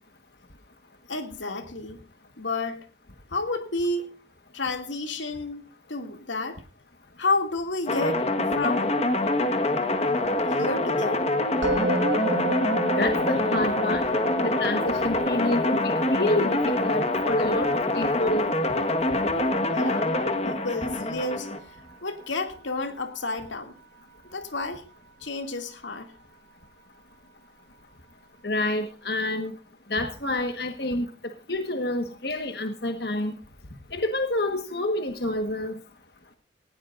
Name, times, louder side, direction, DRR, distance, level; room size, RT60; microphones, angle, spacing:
voice 1, 1.1-2.0 2.4-2.8 3.3-4.1 4.5-5.6 5.9-6.6 7.2-8.2 8.5-8.9 10.6-11.3 19.7-20.2 20.4-21.5 22.0-23.7 24.3-24.8 25.2-26.1, left 2 dB, 85° left, 6 dB, 2.5 m, -30 dB
sound 1, 7.9-21.6, left 2 dB, 35° left, 1.5 m, -25 dB
Musical instrument, 11.6-22.7, right 2 dB, 90° right, 2.4 m, -35 dB
voice 2, 13.0-14.1 14.4-17.7 17.9-18.5 28.4-29.5 29.9-31.1 31.5-33.3 33.9-35.7, left 1 dB, 55° left, 6 dB, 1.5 m, -28 dB
19.0 x 16.0 x 2.6 m, 0.37 s
head